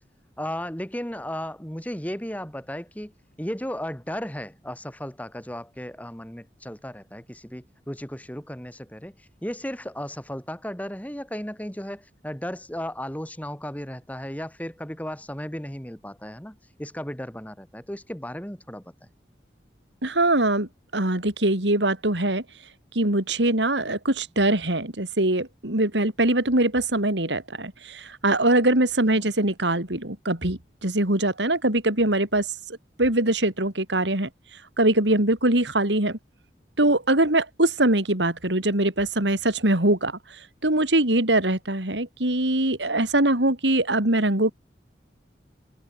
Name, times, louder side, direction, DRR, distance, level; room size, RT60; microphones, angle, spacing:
voice 1, 0.4-3.1 3.4-18.8 29.1-29.3, equal, 10° left, 2.5 m, -35 dB
voice 2, 20.0-22.4 22.9-36.2 36.8-44.5, right 1 dB, 85° right, 4.1 m, -23 dB
head